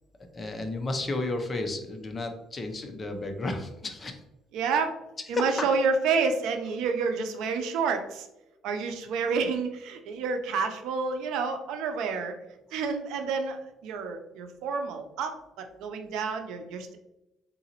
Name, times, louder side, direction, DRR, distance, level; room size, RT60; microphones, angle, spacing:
voice 1, 0.3-4.2 5.3-5.7, left 2 dB, 25° left, 5 dB, 0.6 m, -32 dB
voice 2, 4.5-4.9 5.3-8.3 8.6-12.4 12.7-17.0, right 5 dB, 80° right, 6 dB, 0.5 m, -29 dB
3.9 x 3.8 x 2.9 m, 0.94 s
cardioid pair, 135°, 0 cm